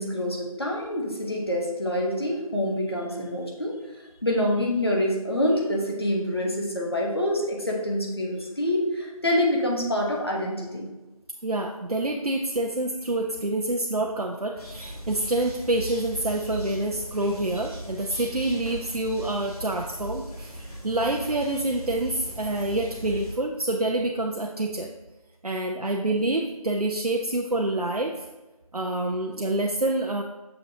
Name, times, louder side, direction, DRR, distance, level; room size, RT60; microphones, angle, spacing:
voice 1, 0.0-3.7 4.2-10.9, left 1 dB, 40° left, -1 dB, 1.1 m, -26 dB
voice 2, 11.4-24.9 25.4-28.3 28.7-30.2, right 2 dB, 90° right, 1 dB, 0.6 m, -27 dB
sound 1, 14.6-23.3, equal, 85° left, 2.1 m, -38 dB
6.5 x 5.9 x 2.8 m, 1.1 s
figure-of-eight pair, 170°, 19 cm